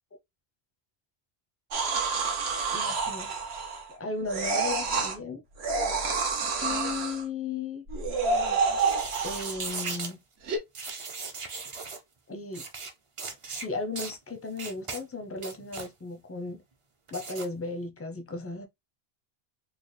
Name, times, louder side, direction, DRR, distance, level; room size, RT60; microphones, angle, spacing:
sound 1, 1.7-3.9 4.3-5.2 5.6-7.2 7.9-9.8 10.5-10.6, right 4 dB, 75° right, 1.1 m, -28 dB
voice 1, 2.7-3.4 4.0-5.4 6.6-7.8 9.2-10.2 12.3-12.6 13.5-16.6 17.1-18.7, left 3 dB, 20° left, 0.4 m, -35 dB
sound 2, 8.7-10.1 10.7-12.0 12.5-12.9 13.2-13.7 14.0-14.1 14.6-15.0 15.4-15.9 17.1-17.5, right 4 dB, 40° right, 0.5 m, -37 dB
4.3 x 2.1 x 3.1 m
omnidirectional pair, 1.1 m